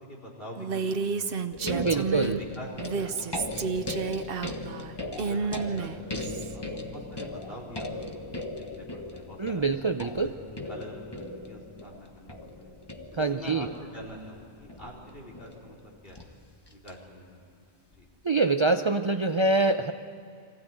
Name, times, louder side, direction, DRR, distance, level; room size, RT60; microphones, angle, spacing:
voice 1, 0.0-1.3 1.9-2.3 2.6-4.4 5.2-9.6 10.2-10.3 10.7-12.7 13.1-13.7 13.9-16.3 16.7-17.4 17.9-18.1, equal, 65° left, -3 dB, 4.5 m, -46 dB
Female speech woman speaking, 0.6-2.4 2.8-6.5, right 5 dB, 65° right, 1.0 m, -31 dB
sound 1, 1.5-16.9 17.9-18.1, left 2 dB, 25° left, 1.4 m, -39 dB
voice 2, 1.6-2.4 9.4-10.3 13.2-13.7 18.2-19.9, right 3 dB, 35° right, 7 dB, 0.5 m, -25 dB
24.0 x 15.5 x 9.1 m, 2.5 s
omnidirectional pair, 1.1 m